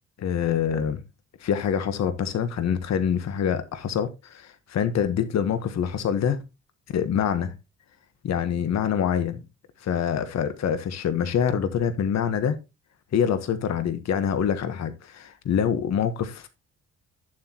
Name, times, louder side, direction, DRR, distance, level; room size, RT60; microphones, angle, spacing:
voice 1, 0.2-1.0 1.4-6.4 6.9-7.5 8.2-9.4 9.8-12.6 13.1-16.5, left 8 dB, 60° left, 1.2 m, -25 dB
11.0 x 7.5 x 2.9 m
cardioid pair, 90°, 30 cm